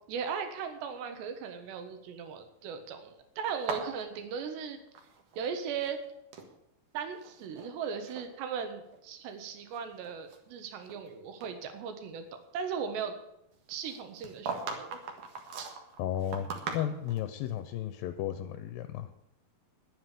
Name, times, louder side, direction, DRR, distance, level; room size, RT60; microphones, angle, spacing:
voice 1, 0.1-4.8 5.4-6.0 6.9-12.3 12.5-13.2 13.7-15.0, right 6 dB, 85° right, 7 dB, 3.6 m, -37 dB
sound 1, 3.5-5.5 5.7-6.5 7.1-7.7 8.0-8.3 8.9-9.0 9.6-11.1 11.4-11.5 13.8-17.3, right 4 dB, 55° right, 2.8 m, -40 dB
voice 2, 16.0-16.5 16.7-19.1, left 11 dB, 75° left, 9 dB, 2.3 m, -34 dB
11.5 x 9.5 x 8.3 m, 0.84 s
omnidirectional pair, 4.8 m